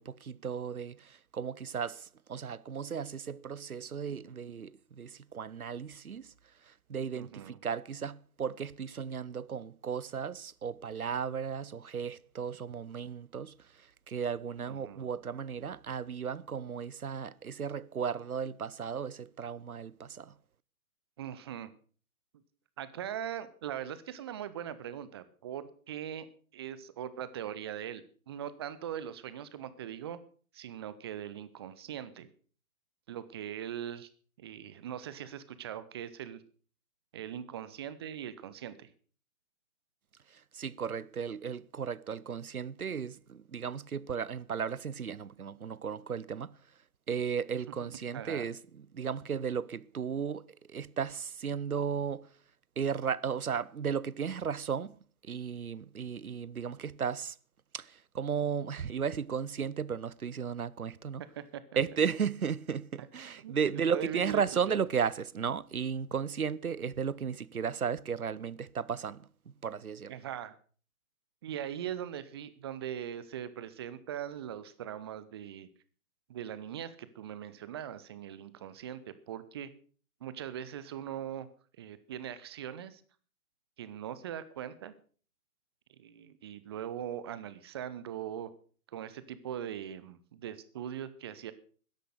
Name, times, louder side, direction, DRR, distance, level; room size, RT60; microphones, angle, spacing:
voice 1, 0.0-6.3 6.6-20.4 40.3-46.6 47.1-52.4 52.8-57.4 57.7-61.2 61.8-70.1, right 7 dB, 80° right, 0.8 m, -35 dB
voice 2, 7.2-7.6 14.7-15.1 21.2-21.7 22.8-26.3 26.5-30.2 30.5-32.3 33.1-34.1 34.4-36.4 37.1-38.9 48.1-48.4 61.4-61.8 63.4-63.5 63.9-64.8 70.1-70.5 71.4-75.7 76.3-79.7 80.2-81.5 81.8-83.0 83.8-84.9 86.0-88.5 88.9-91.5, right 10 dB, 20° right, 0.6 m, -41 dB
13.0 x 10.5 x 6.5 m
figure-of-eight pair, 130°, 43 cm